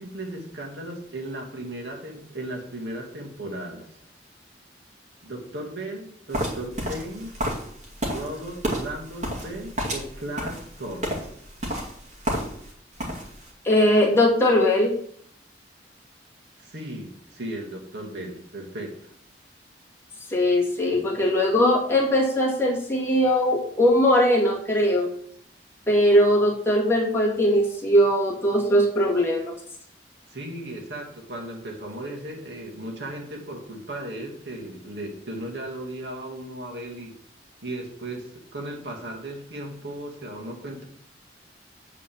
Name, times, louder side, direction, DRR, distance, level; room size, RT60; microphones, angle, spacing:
voice 1, 0.0-4.0 5.2-7.4 8.1-11.1 16.6-19.1 30.3-37.2 37.6-40.8, right 1 dB, 80° right, -1 dB, 2.3 m, -36 dB
sound 1, 6.3-12.7 13.0-13.5, right 1 dB, 40° right, 2.3 m, -31 dB
voice 2, 13.6-14.9 20.3-25.1 25.9-29.5, equal, 15° left, -5 dB, 2.2 m, -20 dB
8.9 x 4.2 x 7.1 m, 0.65 s
head